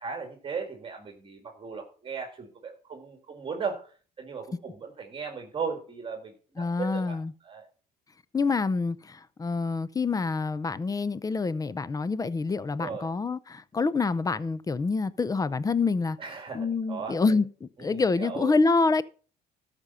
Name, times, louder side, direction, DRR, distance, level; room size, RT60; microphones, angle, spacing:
voice 1, 0.0-3.9 4.2-7.2 7.4-7.7 12.8-13.1 16.2-17.4 17.8-18.5, right 5 dB, 30° right, 2.0 m, -37 dB
voice 2, 6.6-7.3 8.3-16.2 16.5-19.0, left 4 dB, 20° left, 0.6 m, -27 dB
13.0 x 5.2 x 5.6 m
cardioid pair, 110°, 17 cm